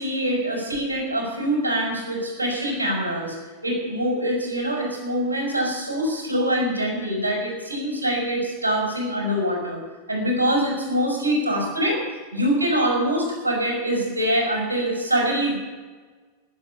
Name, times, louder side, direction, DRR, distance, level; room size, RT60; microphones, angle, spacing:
voice 1, 0.0-3.3 3.6-9.8 10.1-12.0 12.3-15.6, equal, 85° right, 0 dB, 6.0 m, -24 dB
18.5 x 8.2 x 9.3 m, 1.4 s
figure-of-eight pair, 90°, 0 cm